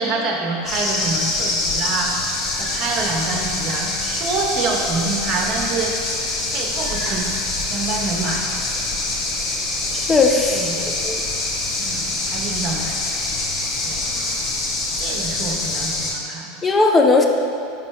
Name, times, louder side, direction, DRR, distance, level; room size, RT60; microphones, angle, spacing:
voice 1, 0.0-2.2 2.6-5.9 6.5-7.3 7.7-8.5 10.5-10.9 11.8-13.1 13.8-14.0 15.0-16.6, right 3 dB, 40° right, 0 dB, 0.9 m, -26 dB
sound 1, 0.7-16.1, left 2 dB, 40° left, 0.9 m, -25 dB
voice 2, 9.9-10.7 11.0-11.2 16.6-17.3, left 3 dB, 20° left, 3 dB, 0.6 m, -17 dB
5.3 x 4.2 x 4.6 m, 2.6 s
hypercardioid pair, 80°, 0 cm